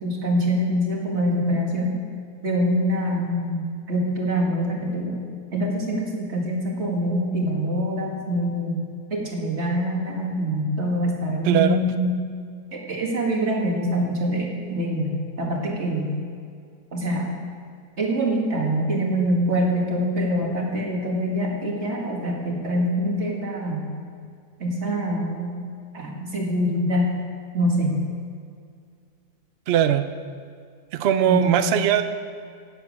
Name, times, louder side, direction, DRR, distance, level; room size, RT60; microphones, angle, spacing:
voice 1, 0.0-1.9 2.4-5.2 5.5-8.8 9.1-12.1 12.7-16.1 16.9-17.3 18.0-23.8 24.6-25.5 25.9-27.1 27.5-28.0 31.2-31.7, equal, 40° right, -1 dB, 2.2 m, -24 dB
voice 2, 11.4-11.8 29.7-30.1 30.9-32.0, right 10 dB, 80° right, 9 dB, 0.5 m, -20 dB
11.5 x 7.5 x 8.5 m, 2.2 s
omnidirectional pair, 1.7 m